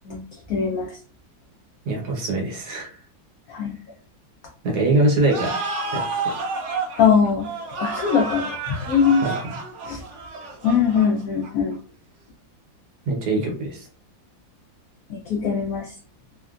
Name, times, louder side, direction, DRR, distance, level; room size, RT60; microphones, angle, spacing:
voice 1, 0.5-0.9 3.5-3.7 7.0-7.5 7.8-9.2 9.9-10.0 10.6-11.8 15.1-15.9, left 6 dB, 85° left, 1 dB, 0.7 m, -21 dB
voice 2, 1.9-2.9 4.6-5.6 5.9-6.3 9.2-9.6 13.1-13.9, right 2 dB, 65° right, 0 dB, 1.3 m, -23 dB
sound 1, 5.3-11.7, right 3 dB, 90° right, 0.6 m, -30 dB
3.3 x 2.2 x 2.4 m, 0.39 s
omnidirectional pair, 2.1 m